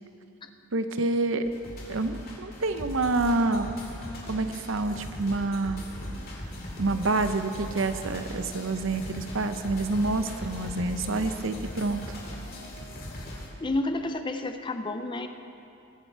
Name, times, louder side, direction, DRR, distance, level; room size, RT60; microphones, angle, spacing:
voice 1, 0.7-1.5 1.9-3.7 4.3-5.8 6.8-12.2, right 2 dB, 60° right, 9 dB, 0.7 m, -27 dB
sound 1, 1.4-13.5, left 1 dB, 45° left, 2.3 m, -39 dB
voice 2, 13.6-15.3, left 2 dB, 20° left, 7 dB, 0.5 m, -30 dB
22.0 x 7.7 x 4.6 m, 2.7 s
head